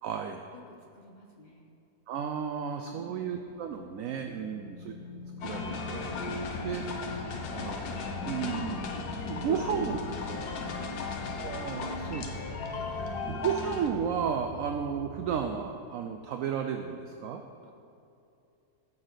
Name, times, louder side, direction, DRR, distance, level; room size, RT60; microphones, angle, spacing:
voice 1, 0.0-0.4 2.1-4.9 5.4-6.8 7.5-7.8 8.2-10.0 11.4-12.5 12.9-17.4, right 7 dB, 70° right, 5 dB, 0.9 m, -33 dB
voice 2, 0.5-1.7 2.9-3.2 4.4-4.9 6.4-6.9 7.2-7.5 9.2-11.0 12.0-12.3 12.8-13.1 17.6-17.7, left 2 dB, 35° left, 0 dB, 0.8 m, -51 dB
sound 1, 3.4-15.3, left 1 dB, 55° left, 1.4 m, -47 dB
sound 2, 5.4-13.9, left 4 dB, 85° left, 1.5 m, -36 dB
14.5 x 6.4 x 4.0 m, 2.7 s
omnidirectional pair, 1.7 m